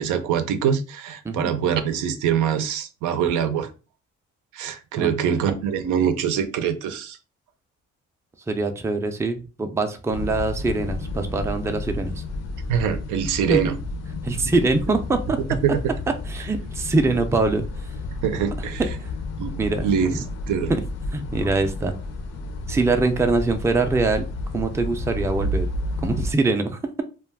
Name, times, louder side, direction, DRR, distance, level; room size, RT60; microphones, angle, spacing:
voice 1, 0.0-3.7 4.5-7.2 12.7-13.8 15.6-15.8 18.2-18.8 19.4-19.5 19.8-20.7, right 8 dB, 85° right, 0.5 m, -24 dB
voice 2, 5.0-5.4 8.5-12.2 13.5-13.6 14.2-15.4 16.3-17.7 19.0-19.1 19.6-19.9 21.1-21.9 22.7-24.3 24.5-25.7 26.0-26.8, right 3 dB, 10° right, 0.4 m, -23 dB
sound 1, 10.1-26.3, left 2 dB, 55° left, 0.6 m, -31 dB
2.3 x 2.2 x 3.3 m
cardioid pair, 90°, 30 cm